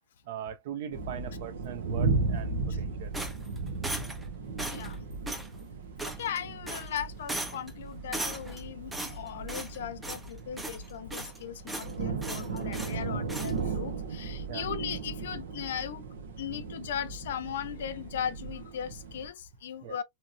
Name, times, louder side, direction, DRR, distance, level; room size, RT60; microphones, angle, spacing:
voice 1, 0.2-3.1 14.5-14.7 19.8-20.0, right 9 dB, 55° right, 0.6 m, -40 dB
sound 1, 0.9-19.3, right 4 dB, 90° right, 0.8 m, -36 dB
sound 2, 3.1-4.3 4.6-4.9 5.3-5.5 6.0-6.4 6.7-7.0 7.3-7.7 8.1-8.6 8.9-9.8 10.0-10.3 10.6-11.4 11.7-11.9 12.2-13.0 13.3-13.5, right 2 dB, 5° right, 0.4 m, -37 dB
voice 2, 4.7-5.0 6.0-16.0 16.4-20.0, left 9 dB, 75° left, 0.5 m, -38 dB
2.9 x 2.8 x 2.5 m
supercardioid pair, 170°, 0 cm